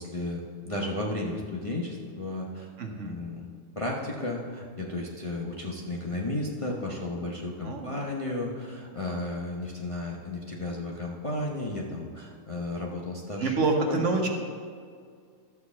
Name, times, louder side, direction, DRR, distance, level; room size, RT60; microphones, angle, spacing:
voice 1, 0.0-2.7 3.0-3.5 3.8-14.0, left 2 dB, 25° left, -2 dB, 0.9 m, -33 dB
voice 2, 2.8-3.2 7.6-8.0 13.4-14.3, right 3 dB, 60° right, 3 dB, 1.3 m, -27 dB
12.0 x 4.7 x 7.2 m, 2.1 s
omnidirectional pair, 1.5 m